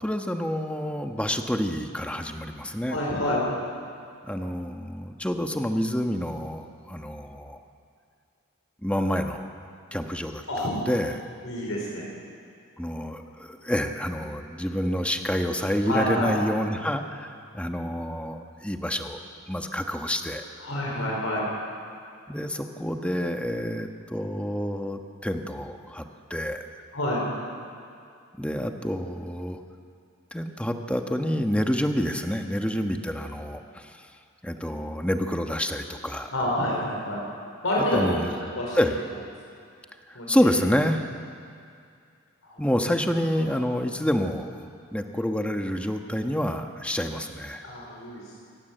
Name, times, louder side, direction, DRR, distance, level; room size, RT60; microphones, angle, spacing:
voice 1, 0.0-3.0 4.2-7.6 8.8-9.5 9.9-10.4 10.9-11.1 12.8-20.4 22.3-26.0 26.3-26.6 28.4-29.6 30.3-34.1 34.4-36.3 37.9-38.3 38.7-39.0 40.1-41.1 42.6-44.6 44.9-47.6, equal, 5° left, 4 dB, 1.2 m, -28 dB
voice 2, 2.9-3.4 10.5-10.8 11.4-12.1 15.9-16.3 20.6-21.5 26.9-27.2 36.3-37.2 37.6-38.2 38.5-38.8 40.1-40.4 42.4-42.6 43.5-43.6 47.6-48.4, left 1 dB, 75° left, -3 dB, 5.1 m, -28 dB
26.5 x 18.5 x 7.8 m, 2.4 s
head